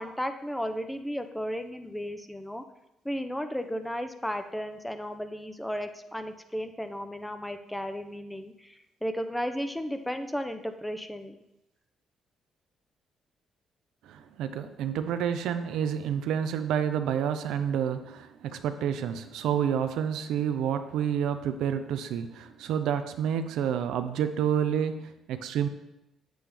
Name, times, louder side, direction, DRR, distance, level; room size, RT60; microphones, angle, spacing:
voice 1, 0.0-2.6 3.0-11.4, equal, 5° left, 8 dB, 0.7 m, -34 dB
voice 2, 14.0-25.7, right 8 dB, 85° right, 8 dB, 0.6 m, -29 dB
8.3 x 7.7 x 3.5 m, 0.87 s
cardioid pair, 90°, 0 cm